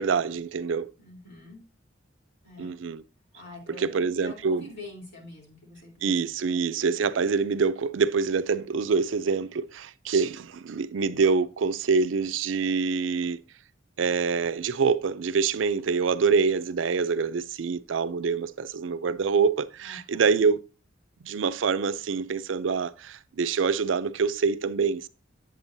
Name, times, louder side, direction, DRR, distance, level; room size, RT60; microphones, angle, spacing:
voice 1, 0.0-0.9 2.6-3.0 3.8-4.7 6.0-13.4 14.0-20.6 21.2-25.1, right 5 dB, 80° right, 0.5 m, -25 dB
voice 2, 1.0-1.6 2.4-2.7 3.3-6.6 19.8-20.4, left 2 dB, 65° left, 3.5 m, -46 dB
8.8 x 7.9 x 2.7 m
head